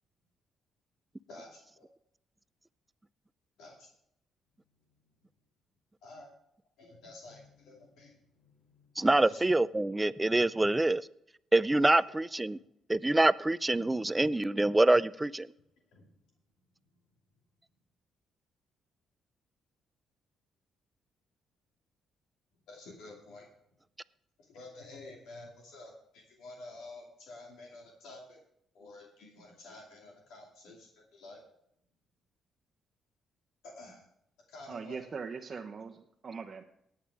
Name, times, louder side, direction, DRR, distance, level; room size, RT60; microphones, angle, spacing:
voice 1, 1.3-1.9 3.6-3.9 6.0-6.3 6.8-8.9 9.2-9.4 11.9-12.2 12.5-12.6 15.9-16.1 16.9-17.0 22.7-23.5 24.4-28.4 28.7-31.4 33.6-34.1 34.5-35.0, left 2 dB, 90° left, -1 dB, 2.5 m, -50 dB
voice 2, 9.0-11.0 11.5-12.6 12.9-15.5, right 2 dB, 15° right, 17 dB, 0.4 m, -25 dB
voice 3, 34.7-36.6, right 5 dB, 40° right, 1 dB, 1.0 m, -41 dB
18.5 x 8.8 x 3.5 m, 0.75 s
cardioid pair, 90°, 0 cm